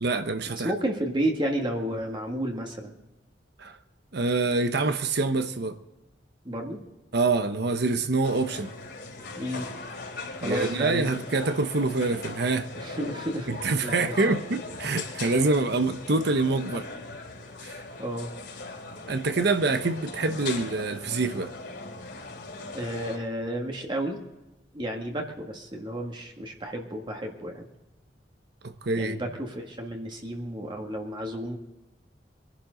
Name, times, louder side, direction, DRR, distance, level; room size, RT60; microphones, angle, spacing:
voice 1, 0.0-0.7 3.6-3.8 4.1-5.8 7.1-8.7 10.4-12.7 13.5-16.9 17.6-17.8 19.1-21.5 28.6-29.2, right 3 dB, 65° right, 0.9 m, -26 dB
voice 2, 0.6-2.9 6.5-6.8 9.4-9.7 10.4-11.1 12.8-13.5 13.8-14.3 18.0-18.3 22.7-24.2 24.7-27.7 29.0-31.6, right 1 dB, 25° right, 1.6 m, -31 dB
sound 1, 8.2-23.2, left 3 dB, 65° left, 3.5 m, -39 dB
23.0 x 11.5 x 3.9 m
head